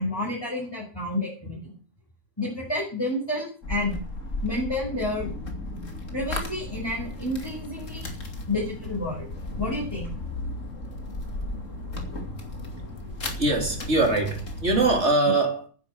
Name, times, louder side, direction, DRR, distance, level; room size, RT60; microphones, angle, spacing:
voice 1, 0.0-1.7 2.4-4.0 4.4-5.3 6.1-8.1 8.5-9.3 9.6-10.1, left 1 dB, 15° left, 5.9 m, -30 dB
sound 1, 3.6-15.0, left 2 dB, 60° left, 3.0 m, -35 dB
voice 2, 13.4-15.7, right 2 dB, 50° right, 3.9 m, -22 dB
10.5 x 10.0 x 8.3 m
omnidirectional pair, 1.5 m